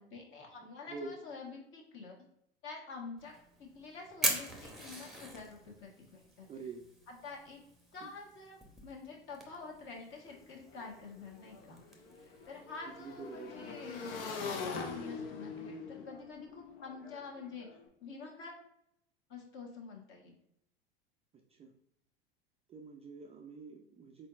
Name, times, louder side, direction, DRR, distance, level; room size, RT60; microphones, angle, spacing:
voice 1, 0.0-2.1 2.6-3.3 3.6-6.5 7.1-7.6 7.9-11.8 12.4-17.7 18.0-18.5 19.3-20.3, left 4 dB, 40° left, 0 dB, 1.3 m, -47 dB
Fire, 3.2-14.7, right 1 dB, ahead, 0.8 m, -43 dB
voice 2, 6.5-6.9 8.0-8.1 12.9-13.7 21.5-21.7 22.7-24.3, right 4 dB, 20° right, 2 dB, 0.4 m, -46 dB
Motorcycle / Engine, 10.3-10.4 10.6-17.8, left 4 dB, 65° left, 0.8 m, -43 dB
4.1 x 4.0 x 2.4 m, 0.75 s
hypercardioid pair, 85°, 31 cm